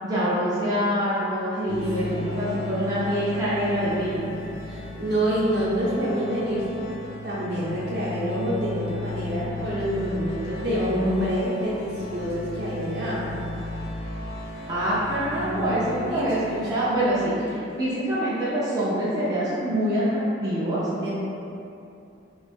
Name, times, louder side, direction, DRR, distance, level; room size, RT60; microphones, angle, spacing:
voice 1, 0.0-4.3 14.7-20.8, equal, 20° right, -11 dB, 0.5 m, -25 dB
sound 1, 1.7-17.6, left 2 dB, 65° left, 0.4 m, -36 dB
voice 2, 2.1-2.5 4.6-6.8 7.2-13.4 15.3-16.7 20.9-21.1, equal, 55° right, -7 dB, 0.8 m, -27 dB
2.6 x 2.4 x 4.1 m, 2.7 s
head